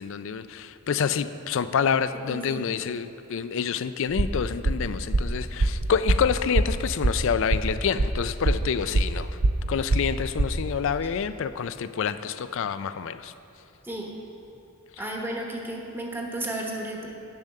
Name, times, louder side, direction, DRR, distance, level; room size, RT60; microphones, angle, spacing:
voice 1, 0.0-9.3 9.7-13.3, left 7 dB, 60° left, 13 dB, 0.4 m, -27 dB
voice 2, 2.2-2.7 11.0-11.1 13.8-14.1 15.0-17.1, right 1 dB, 10° right, 0 dB, 1.1 m, -33 dB
sound 1, 4.1-10.8, right 2 dB, 45° right, 0.5 m, -24 dB
9.7 x 7.1 x 6.5 m, 2.8 s
head